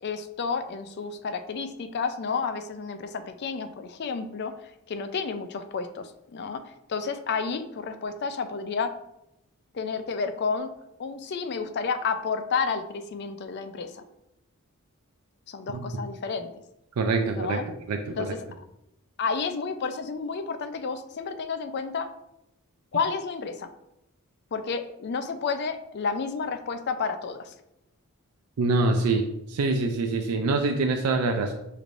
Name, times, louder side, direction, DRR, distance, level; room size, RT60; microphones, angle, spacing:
voice 1, 0.0-4.5 4.9-6.6 6.9-8.9 9.7-10.7 11.0-14.0 15.5-16.5 17.3-17.6 18.2-18.6 19.2-22.1 22.9-23.7 24.5-27.5, left 5 dB, 50° left, 8 dB, 0.4 m, -31 dB
voice 2, 17.0-17.6 17.9-18.3 28.6-29.2 29.5-31.5, right 3 dB, 90° right, 4 dB, 0.4 m, -25 dB
6.4 x 3.2 x 2.5 m, 0.85 s
head